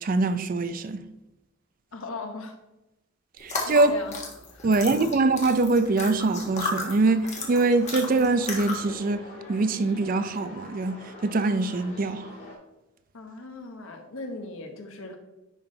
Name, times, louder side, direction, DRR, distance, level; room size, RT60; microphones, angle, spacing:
voice 1, 0.0-1.0 3.4-3.9 4.6-9.2 9.5-12.3, right 3 dB, 40° right, 0.4 m, -23 dB
voice 2, 1.9-2.6 3.5-4.2 4.5-4.9 13.1-15.2, left 3 dB, 80° left, 1.1 m, -39 dB
sound 1, 3.4-8.9, left 3 dB, 35° left, 1.4 m, -34 dB
sound 2, 7.3-12.6, left 1 dB, 55° left, 2.4 m, -44 dB
10.0 x 3.7 x 3.9 m
head